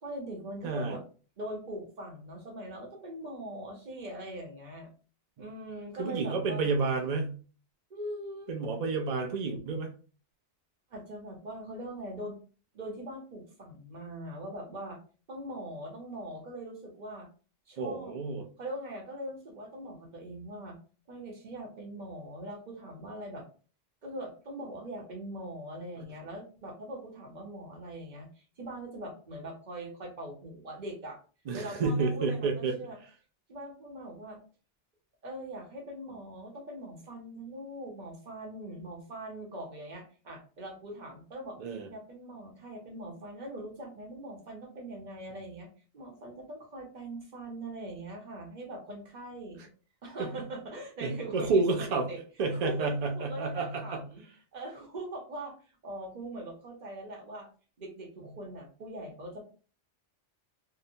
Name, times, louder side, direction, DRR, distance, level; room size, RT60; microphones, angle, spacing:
voice 1, 0.0-1.0 1.4-4.9 5.4-6.7 7.9-8.5 10.9-12.4 12.7-15.0 15.3-17.3 17.7-18.1 18.6-20.8 21.1-23.4 24.0-31.2 31.5-33.0 33.5-34.4 35.2-41.6 41.9-45.7 45.9-49.6 50.0-52.2 52.5-52.9 53.1-54.2 54.5-57.5 57.8-59.5, right 1 dB, 45° right, 1 dB, 0.8 m, -42 dB
voice 2, 0.6-1.0 6.0-7.3 8.5-9.9 17.8-18.4 31.5-32.7 41.6-41.9 50.2-50.3 51.0-52.1 52.4-54.0, right 3 dB, 70° right, 3 dB, 0.3 m, -30 dB
2.8 x 2.1 x 2.6 m, 0.37 s
omnidirectional pair, 1.2 m